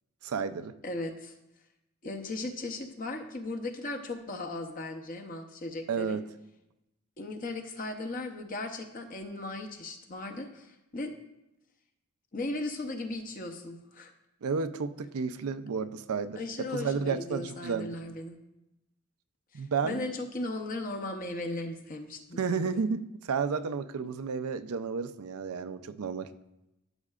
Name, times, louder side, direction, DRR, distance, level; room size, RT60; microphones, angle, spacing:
voice 1, 0.2-0.8 5.9-6.3 14.4-18.0 19.5-20.1 22.4-26.3, right 5 dB, 90° right, 12 dB, 0.5 m, -32 dB
voice 2, 0.8-1.3 2.0-6.2 7.2-11.1 12.3-14.1 16.4-18.4 19.5-22.8, left 2 dB, 40° left, 4 dB, 0.7 m, -37 dB
13.0 x 6.4 x 2.4 m, 0.90 s
head